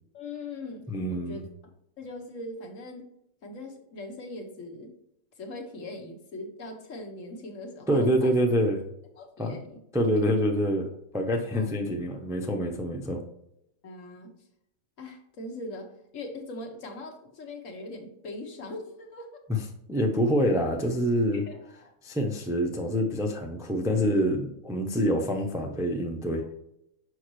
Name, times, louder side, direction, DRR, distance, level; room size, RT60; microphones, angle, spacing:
voice 1, 0.1-1.4 2.0-3.1 3.4-4.9 5.4-8.3 9.2-9.8 10.2-10.4 11.5-11.7 13.8-14.3 15.0-19.4 21.3-21.9, left 2 dB, 65° left, 3 dB, 1.5 m, -41 dB
voice 2, 0.9-1.4 7.9-8.8 9.4-9.6 9.9-10.9 11.1-13.2 19.5-21.5 22.0-26.4, equal, 5° right, 3 dB, 0.5 m, -26 dB
6.4 x 5.3 x 3.1 m, 0.80 s
omnidirectional pair, 1.5 m